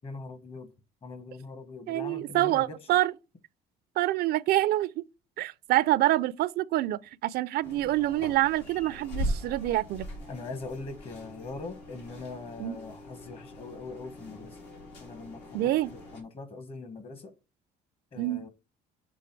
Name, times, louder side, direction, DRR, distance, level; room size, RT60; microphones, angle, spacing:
voice 1, 0.0-0.7 1.0-2.8 10.3-14.6 15.0-17.3 18.1-18.5, left 3 dB, 35° left, 1.1 m, -41 dB
voice 2, 1.9-3.1 4.0-5.0 5.4-10.0 12.6-12.8 15.5-15.9 18.2-18.4, right 15 dB, 70° right, 0.4 m, -26 dB
sound 1, 7.6-16.2, equal, 85° left, 2.6 m, -40 dB
6.2 x 3.4 x 4.5 m
cardioid pair, 110°, 17 cm